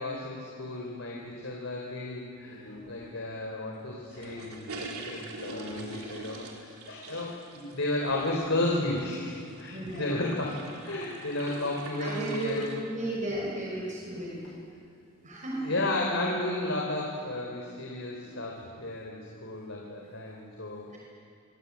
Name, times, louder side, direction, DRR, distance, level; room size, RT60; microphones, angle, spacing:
voice 1, 0.0-12.7 15.6-21.0, left 2 dB, 60° left, -1 dB, 4.1 m, -33 dB
sound 1, 2.4-3.1 3.9-4.6 5.3-6.1 6.6-7.2 7.6-7.7 8.0-8.6 9.8-10.6 12.8-12.9 13.2-13.5 13.9-14.6 18.1-18.8, equal, 85° left, 6.6 m, -48 dB
sound 2, 4.1-12.8, right 2 dB, 75° right, 3.9 m, -44 dB
voice 2, 9.6-10.2 12.0-12.5 12.9-14.4 15.2-15.8, right 1 dB, 35° right, -4 dB, 6.1 m, -34 dB
27.0 x 24.5 x 8.5 m, 2.5 s
head